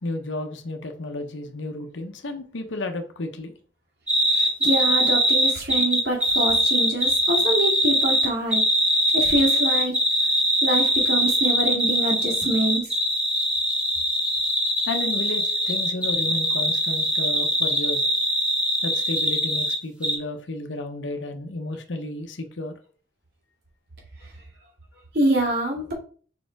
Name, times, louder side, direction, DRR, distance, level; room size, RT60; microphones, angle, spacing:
voice 1, 0.0-3.5 14.9-18.1 18.8-22.7, left 2 dB, 80° left, 0.8 m, -32 dB
sound 1, 4.1-19.8 20.0-20.1, equal, 5° right, 1.9 m, -22 dB
voice 2, 4.3-8.6 9.1-10.0 10.6-12.8 25.1-25.9, right 1 dB, 60° right, 2.6 m, -25 dB
5.7 x 4.3 x 4.6 m
head